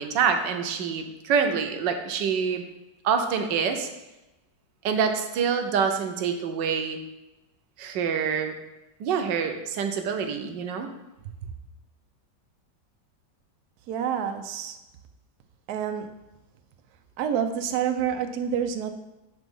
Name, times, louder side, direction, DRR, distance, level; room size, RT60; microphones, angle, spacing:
voice 1, 0.0-2.6 3.0-3.9 4.8-7.0 7.8-8.5 9.0-10.9, right 6 dB, 85° right, 6 dB, 1.4 m, -26 dB
voice 2, 13.9-14.8 15.7-16.1 17.2-18.9, right 8 dB, 65° right, 6 dB, 1.1 m, -28 dB
8.3 x 3.6 x 5.3 m, 0.99 s
omnidirectional pair, 1.9 m